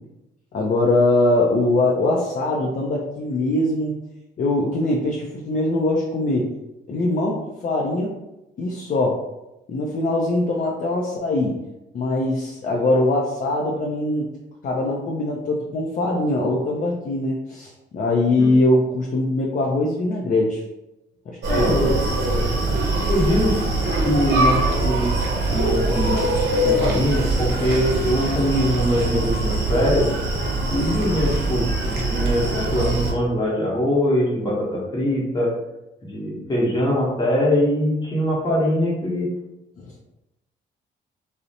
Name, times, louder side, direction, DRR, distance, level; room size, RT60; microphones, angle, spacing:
voice 1, 0.5-4.0 4.4-6.5 6.9-8.1 8.6-9.2 9.7-11.6 11.9-14.3 14.6-20.6 21.3-21.9 39.8-39.9, left 2 dB, 40° left, -1 dB, 0.4 m, -22 dB
Screaming, 21.4-33.1, right 2 dB, 55° right, 0.6 m, -22 dB
voice 2, 21.5-22.0 23.1-23.6 24.0-25.1 25.5-26.2 26.6-30.1 30.7-35.5 36.0-39.3, left 1 dB, 20° left, -4 dB, 0.9 m, -22 dB
2.5 x 2.0 x 2.7 m, 0.95 s
cardioid pair, 90°, 20 cm